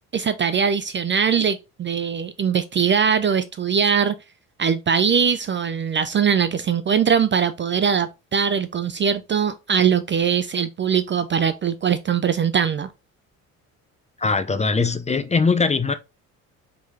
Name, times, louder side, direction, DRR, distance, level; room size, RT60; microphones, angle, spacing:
voice 1, 0.1-4.1 4.6-12.9, right 7 dB, 30° right, 0.4 m, -21 dB
voice 2, 14.2-15.9, left 4 dB, 15° left, 0.5 m, -21 dB
4.6 x 3.8 x 2.7 m
hypercardioid pair, 65°, 41 cm